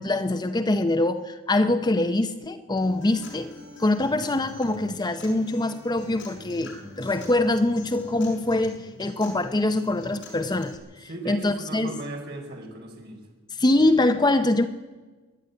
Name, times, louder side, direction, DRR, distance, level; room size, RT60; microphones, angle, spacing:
voice 1, 0.0-3.5 3.8-12.0 13.6-14.7, left 2 dB, 20° left, 0.7 m, -24 dB
Acoustic guitar, 2.8-10.8, left 2 dB, 65° left, 6.0 m, -44 dB
voice 2, 4.0-4.4 11.0-13.2, right 2 dB, 55° right, 4.6 m, -38 dB
25.5 x 11.0 x 9.4 m
head